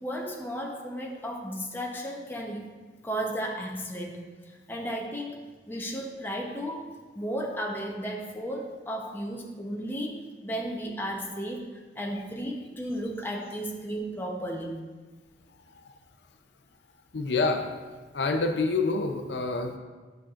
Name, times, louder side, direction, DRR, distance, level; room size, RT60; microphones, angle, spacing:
voice 1, 0.0-2.7 3.0-5.4 5.7-6.9 7.1-14.7, equal, 10° left, -1 dB, 0.8 m, -34 dB
voice 2, 17.1-17.7 18.1-19.8, left 3 dB, 75° left, 5 dB, 0.6 m, -27 dB
10.0 x 6.4 x 2.5 m, 1.3 s
head